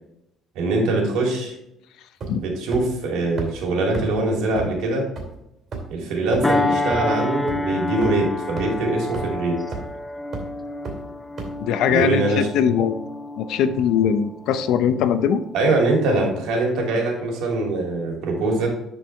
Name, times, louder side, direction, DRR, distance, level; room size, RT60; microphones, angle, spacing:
voice 1, 0.5-1.5 2.4-5.1 5.9-9.6 11.9-12.5 15.5-18.7, right 2 dB, 75° right, 0 dB, 2.8 m, -23 dB
sound 1, 2.2-2.5 2.7-2.8 3.4-3.5 3.9-4.0 4.6-4.7 5.2-5.3 5.7-5.9 6.3-6.4 6.9-7.0 7.5-7.6 8.0-8.1 8.6-8.7 9.1-9.2 9.7-9.9 10.3-10.4 10.8-10.9 11.4-11.5, right 5 dB, 40° right, 2.5 m, -30 dB
sound 2, 6.4-15.3 15.8-16.0, left 2 dB, 10° left, 0.5 m, -29 dB
voice 2, 11.6-13.0 13.4-15.4, left 8 dB, 70° left, 11 dB, 0.7 m, -21 dB
11.0 x 4.7 x 3.4 m, 0.85 s
cardioid pair, 150°, 0 cm